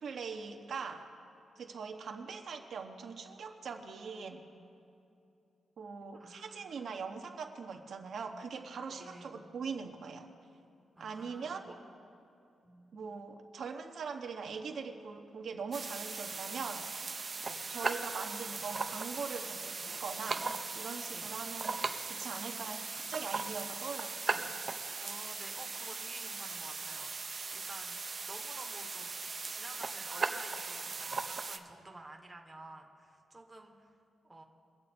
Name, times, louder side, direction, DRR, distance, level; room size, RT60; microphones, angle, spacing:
voice 1, 0.0-1.1 1.6-4.4 5.8-10.3 11.0-11.7 12.9-16.9 17.7-21.8 22.0-24.5, right 5 dB, 55° right, 3 dB, 0.9 m, -42 dB
voice 2, 6.1-7.0 8.9-9.5 11.0-11.8 12.6-12.9 17.4-17.7 21.1-21.3 24.9-29.2 29.5-34.0 34.2-34.4, right 2 dB, 10° right, 1 dB, 1.0 m, -52 dB
sound 1, 15.7-31.6, right 4 dB, 30° right, 0.6 m, -38 dB
23.0 x 7.9 x 4.3 m, 2.7 s
wide cardioid pair, 170°, 0 cm